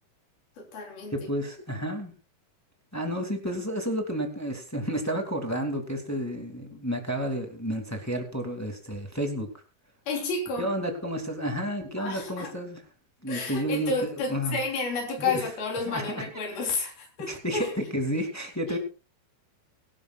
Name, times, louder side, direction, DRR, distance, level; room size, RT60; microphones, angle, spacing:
voice 1, 0.6-1.2 6.7-6.8 10.1-10.7 12.0-12.6 13.3-17.7 18.7-18.8, left 3 dB, 85° left, 5.3 m, -31 dB
voice 2, 1.1-2.1 2.9-9.5 10.6-12.8 13.2-13.9 14.3-14.6 15.2-15.4 15.9-16.0 17.3-18.8, equal, 5° left, 1.7 m, -31 dB
24.0 x 12.5 x 2.4 m
omnidirectional pair, 4.1 m